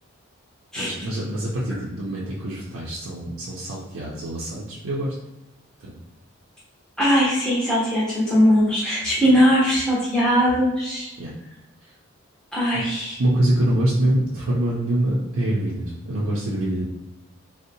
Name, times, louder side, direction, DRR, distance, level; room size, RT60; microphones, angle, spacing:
voice 1, 0.8-5.1 5.8-5.9 9.3-9.4 11.2-11.3 12.7-12.8 13.2-16.8, right 1 dB, 85° right, -5 dB, 0.5 m, -25 dB
voice 2, 7.0-11.1 12.5-13.2, equal, 5° left, -8 dB, 0.5 m, -20 dB
2.6 x 2.0 x 2.6 m, 0.98 s
head